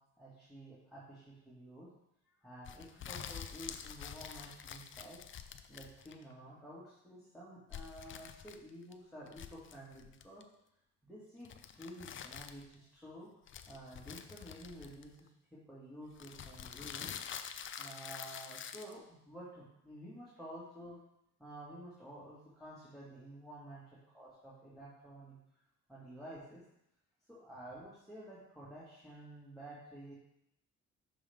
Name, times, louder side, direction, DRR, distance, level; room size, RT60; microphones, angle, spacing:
voice 1, 0.2-1.9 2.4-5.2 5.7-10.4 11.0-13.3 13.7-17.2 17.8-21.0 21.4-23.8 24.1-25.4 25.9-26.6 27.3-30.1, right 1 dB, ahead, -9 dB, 2.0 m, -51 dB
sound 1, 2.6-6.3 7.7-8.9 9.3-10.4 11.4-12.7 13.5-15.3 16.1-18.9, left 8 dB, 40° left, 0.5 m, -47 dB
6.0 x 5.1 x 3.6 m, 0.79 s
cardioid pair, 90°, 30 cm